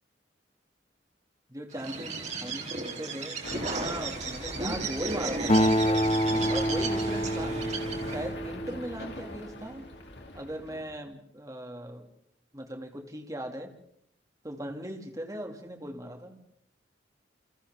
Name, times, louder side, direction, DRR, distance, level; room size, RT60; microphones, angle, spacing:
voice 1, 1.5-6.1 6.5-7.6 8.1-9.9 10.3-12.1 12.5-13.7 14.4-16.4, right 1 dB, 20° right, 4 dB, 2.6 m, -38 dB
Bird, 1.7-8.3, right 3 dB, 40° right, 3.6 m, -35 dB
sound 1, 3.4-11.0, left 1 dB, 65° left, 3.0 m, -42 dB
Acoustic guitar, 5.5-9.3, equal, 40° left, 1.3 m, -27 dB
29.5 x 29.0 x 3.8 m, 0.71 s
head